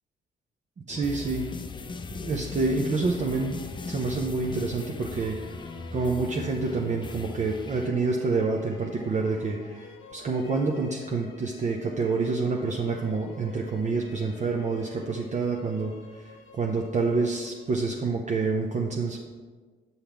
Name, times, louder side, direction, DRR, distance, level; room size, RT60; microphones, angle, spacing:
sound 1, 0.9-7.9, left 4 dB, 25° left, 0.4 m, -39 dB
voice 1, 0.9-1.5 2.2-5.4 5.9-19.2, right 3 dB, 35° right, 0 dB, 0.6 m, -28 dB
sound 2, 3.0-18.0, left 3 dB, 90° left, 1.2 m, -50 dB
7.1 x 5.5 x 3.4 m, 1.5 s
cardioid pair, 90°, 20 cm